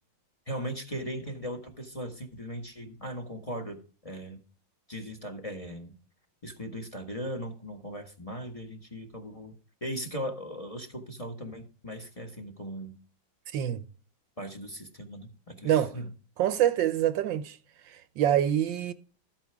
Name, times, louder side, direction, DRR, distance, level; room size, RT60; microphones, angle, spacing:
voice 1, 0.5-4.4 4.9-5.9 6.4-9.5 9.8-12.9 14.4-16.1, equal, 20° left, 1.4 m, -38 dB
voice 2, 13.5-13.8 15.6-16.0 16.4-17.6 17.9-18.9, right 11 dB, 75° right, 1.4 m, -26 dB
13.0 x 8.7 x 3.5 m
omnidirectional pair, 2.1 m